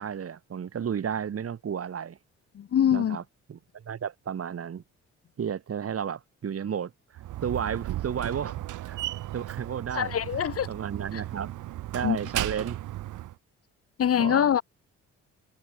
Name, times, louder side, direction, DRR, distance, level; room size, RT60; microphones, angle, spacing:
voice 1, 0.0-2.2 2.9-3.2 3.5-4.8 5.4-9.0 9.3-10.1 10.7-11.5 11.9-12.8 14.2-14.5, right 8 dB, 50° right, 4.3 m, -33 dB
voice 2, 2.5-3.2 9.9-10.7 12.0-12.2 14.0-14.6, left 9 dB, 50° left, 1.1 m, -24 dB
Slam, 7.1-13.3, right 15 dB, 85° right, 5.8 m, -35 dB
cardioid pair, 90°, 30 cm